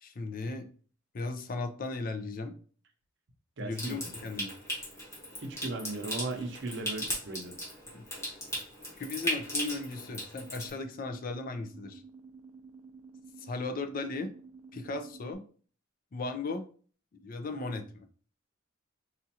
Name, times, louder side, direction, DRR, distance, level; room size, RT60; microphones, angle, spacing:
voice 1, 0.0-0.7 1.1-2.5 3.6-4.5 7.9-8.3 9.0-12.0 13.4-14.3 14.7-15.4 16.1-16.6 17.2-18.1, left 3 dB, 45° left, 6 dB, 0.5 m, -36 dB
voice 2, 3.6-4.1 5.4-7.5, right 2 dB, 60° right, 3 dB, 0.7 m, -37 dB
Water tap faucet / Sink (filling or washing) / Trickle dribble, 3.7-10.7, equal, 15° left, 1.2 m, -37 dB
sound 1, 10.3-15.3, right 4 dB, 15° right, 0.4 m, -51 dB
4.2 x 2.4 x 2.8 m, 0.43 s
head